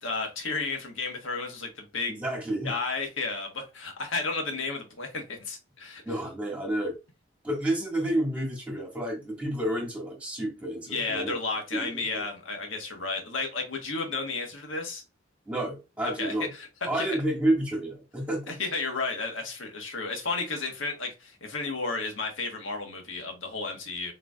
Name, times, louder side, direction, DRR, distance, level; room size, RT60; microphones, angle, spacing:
voice 1, 0.0-2.2 2.6-6.0 10.9-15.0 16.0-17.1 18.5-24.1, left 3 dB, 75° left, 1.4 m, -33 dB
voice 2, 2.1-2.8 6.0-6.9 7.4-11.4 11.7-12.2 15.5-16.5 16.9-18.6, right 1 dB, 5° right, 1.9 m, -30 dB
6.7 x 3.3 x 2.4 m
head